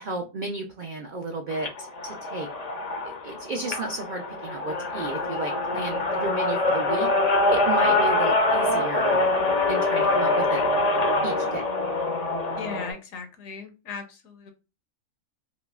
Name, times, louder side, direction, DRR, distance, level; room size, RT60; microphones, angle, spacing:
voice 1, 0.0-2.5 3.0-7.1 7.5-9.2 9.7-10.6 11.2-11.7, right 2 dB, 70° right, 2 dB, 0.4 m, -33 dB
sound 1, 1.5-12.9, left 2 dB, 50° left, 0.5 m, -24 dB
voice 2, 12.6-14.5, left 5 dB, 75° left, 6 dB, 1.1 m, -37 dB
5.2 x 2.0 x 2.3 m, 0.30 s
omnidirectional pair, 1.5 m